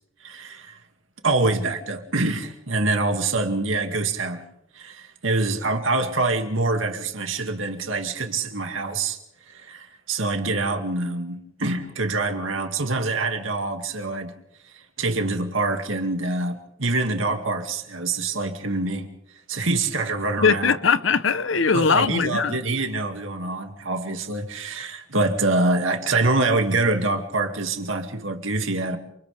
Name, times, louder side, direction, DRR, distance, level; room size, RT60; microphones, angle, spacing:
voice 1, 0.2-0.8 1.2-4.4 4.7-9.2 9.5-14.3 14.7-19.1 19.5-20.7 21.7-29.0, right 2 dB, 80° right, 2.4 m, -25 dB
voice 2, 20.4-22.6, left 5 dB, 75° left, 1.0 m, -20 dB
28.5 x 28.0 x 3.6 m
head